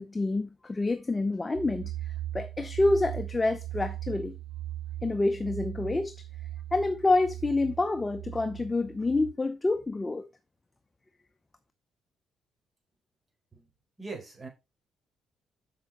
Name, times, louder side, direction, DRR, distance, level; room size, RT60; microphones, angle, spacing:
voice 1, 0.0-1.9 2.3-4.3 5.0-6.1 6.7-10.3, left 2 dB, 20° left, 0.8 m, -27 dB
sound 1, 1.5-9.3, right 13 dB, 85° right, 0.4 m, -39 dB
voice 2, 14.0-14.5, right 3 dB, 25° right, 4.2 m, -41 dB
7.1 x 6.3 x 4.3 m
cardioid pair, 90°, 0 cm